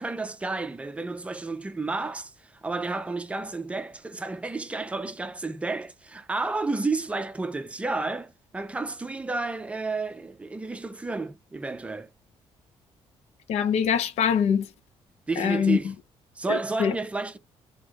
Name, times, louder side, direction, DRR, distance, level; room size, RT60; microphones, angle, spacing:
voice 1, 0.0-12.1 15.3-15.9 16.4-17.4, right 3 dB, 10° right, 0.5 m, -31 dB
voice 2, 13.5-14.7 15.4-15.8 16.5-16.9, left 7 dB, 80° left, 0.8 m, -23 dB
4.4 x 2.9 x 2.9 m
cardioid pair, 140°, 11 cm